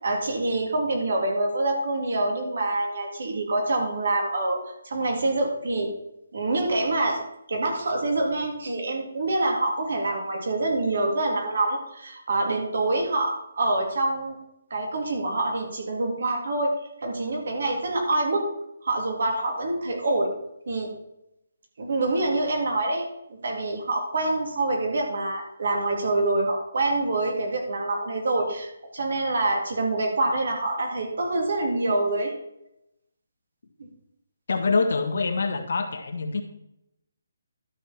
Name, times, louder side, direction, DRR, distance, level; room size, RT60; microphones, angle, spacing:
voice 1, 0.0-5.9 6.3-7.2 7.5-14.4 14.7-18.5 18.8-20.3 20.7-20.9 21.8-23.1 23.4-32.3, right 2 dB, 65° right, 1 dB, 3.5 m, -26 dB
voice 2, 34.5-36.4, left 4 dB, 70° left, 5 dB, 1.7 m, -25 dB
12.5 x 6.9 x 4.6 m, 0.82 s
hypercardioid pair, 165°, 0 cm